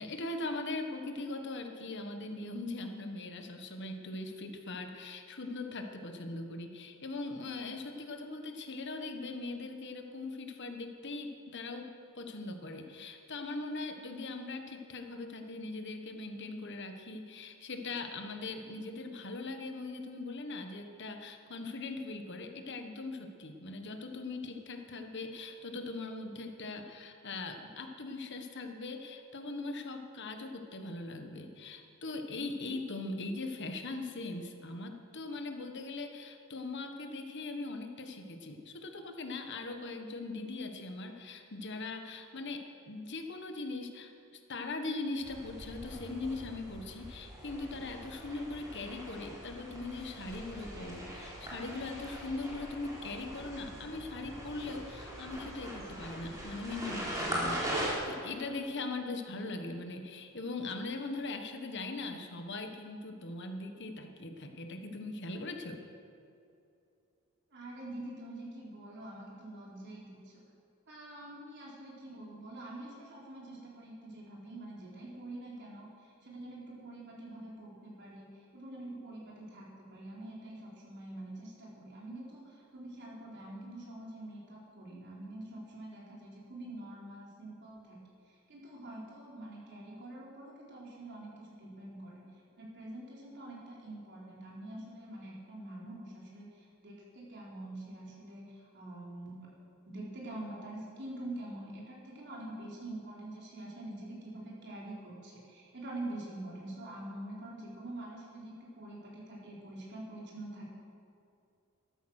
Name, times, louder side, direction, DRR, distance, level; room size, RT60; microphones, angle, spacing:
voice 1, 0.0-44.1 44.5-65.8, left 2 dB, 55° left, 5 dB, 1.3 m, -40 dB
sound 1, 45.2-57.9, right 1 dB, 15° right, 3.5 m, -41 dB
voice 2, 67.5-70.4 70.9-88.0 88.3-99.4 99.9-110.7, right 1 dB, 55° right, -4 dB, 4.1 m, -45 dB
13.0 x 13.0 x 6.4 m, 2.6 s
head